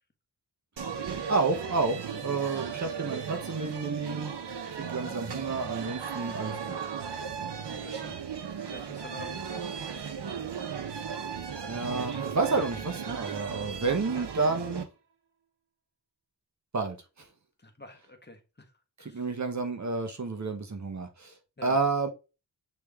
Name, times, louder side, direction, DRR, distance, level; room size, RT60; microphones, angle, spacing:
sound 1, 0.8-14.8, right 7 dB, 80° right, 1.0 m, -36 dB
voice 1, 1.3-4.3 4.7-6.8 11.7-14.9 16.7-17.3 19.0-21.4 21.6-22.1, right 4 dB, 45° right, 5 dB, 1.0 m, -30 dB
voice 2, 7.6-8.1 8.7-9.5 14.1-14.3 17.6-18.7 19.0-19.3 21.6-21.8, left 2 dB, 25° left, 5 dB, 1.4 m, -48 dB
8.3 x 3.3 x 3.6 m, 0.29 s
wide cardioid pair, 120°, 41 cm